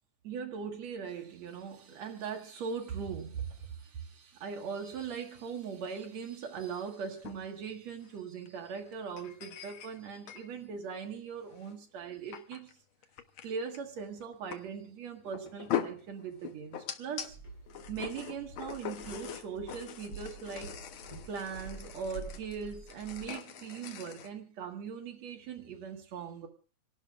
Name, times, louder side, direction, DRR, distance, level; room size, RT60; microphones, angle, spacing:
voice 1, 0.2-12.7 13.4-17.4 17.9-20.8 21.2-26.5, right 6 dB, 65° right, 2.6 m, -40 dB
sound 1, 6.9-7.4 8.0-8.1 8.5-8.6 8.9-10.5 11.6-11.7 12.3-12.7 13.0-13.5 13.7-13.8 14.2-14.6 15.2-17.3 17.7-24.3, left 9 dB, 80° left, 1.1 m, -41 dB
Walk footsteps, 17.2-23.3, right 3 dB, 30° left, 3.5 m, -48 dB
27.0 x 11.5 x 2.4 m
omnidirectional pair, 3.5 m